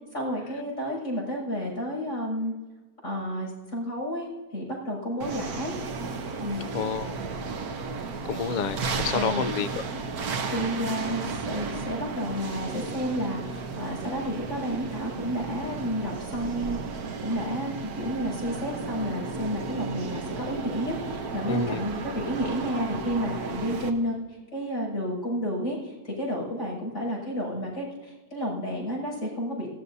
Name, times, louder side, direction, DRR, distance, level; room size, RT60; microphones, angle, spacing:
voice 1, 0.1-2.5 3.0-5.7 6.4-6.7 9.1-9.4 10.5-17.0 17.2-24.2 24.5-29.7, equal, 50° left, -3 dB, 7.1 m, -31 dB
sound 1, 5.2-23.9, right 4 dB, 75° right, 1.6 m, -34 dB
voice 2, 6.7-7.2 8.2-9.8 21.5-21.8, left 6 dB, 90° left, 13 dB, 0.4 m, -29 dB
26.0 x 16.5 x 2.7 m, 1.2 s
omnidirectional pair, 1.6 m